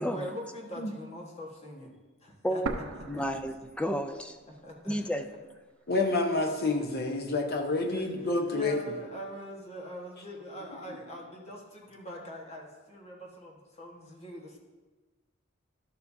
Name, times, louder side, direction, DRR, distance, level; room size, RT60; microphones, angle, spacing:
voice 1, 0.0-2.0 2.2-3.4 4.6-5.2 7.8-8.1 8.5-14.6, equal, 30° left, -1 dB, 1.4 m, -43 dB
voice 2, 2.4-2.8 3.1-4.4 4.9-5.3, equal, 5° left, 7 dB, 0.4 m, -31 dB
sound 1, 2.7-4.6 4.9-5.0 5.7-6.7, right 3 dB, 65° right, 0.6 m, -39 dB
voice 3, 5.9-8.8 10.9-11.0, left 2 dB, 50° left, 3 dB, 0.9 m, -28 dB
11.5 x 7.1 x 2.7 m, 1.2 s
head